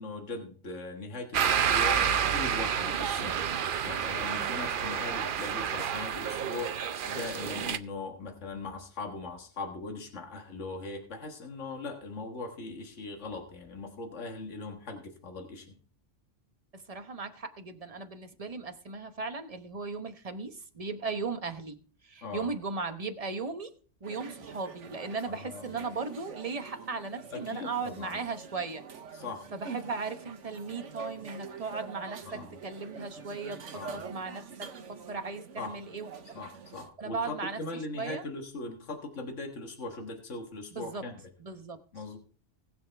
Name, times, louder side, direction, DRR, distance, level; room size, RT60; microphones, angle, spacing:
voice 1, 0.0-15.7 22.2-22.5 25.3-25.8 27.3-28.2 29.1-29.5 32.2-32.5 33.7-34.0 35.6-35.7 36.3-41.2 41.9-42.2, left 3 dB, 75° left, 3 dB, 1.9 m, -40 dB
sound 1, 1.3-7.8, right 8 dB, 55° right, 0.7 m, -29 dB
voice 2, 16.7-21.8 22.0-23.7 24.0-28.8 29.5-33.6 33.9-34.7 35.1-36.1 37.0-37.6 38.0-38.2 40.7-41.0 41.4-41.8, right 4 dB, 30° right, 7 dB, 1.0 m, -37 dB
sound 2, 24.0-36.9, right 6 dB, 80° right, 1.3 m, -46 dB
19.5 x 7.0 x 3.4 m, 0.42 s
omnidirectional pair, 1.2 m